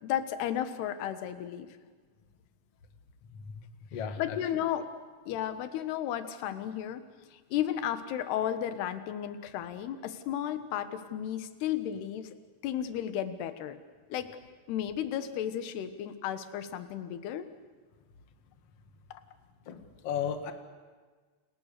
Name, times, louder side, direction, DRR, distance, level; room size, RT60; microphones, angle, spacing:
voice 1, 0.0-1.7 4.2-4.9 5.3-7.0 7.3-12.3 12.6-13.8 14.1-14.3 14.7-17.5, left 10 dB, 70° left, 10 dB, 3.2 m, -33 dB
voice 2, 3.3-3.7 3.9-4.4 19.7-20.5, left 8 dB, 50° left, 7 dB, 1.9 m, -35 dB
29.5 x 28.5 x 6.8 m, 1.5 s
omnidirectional pair, 5.3 m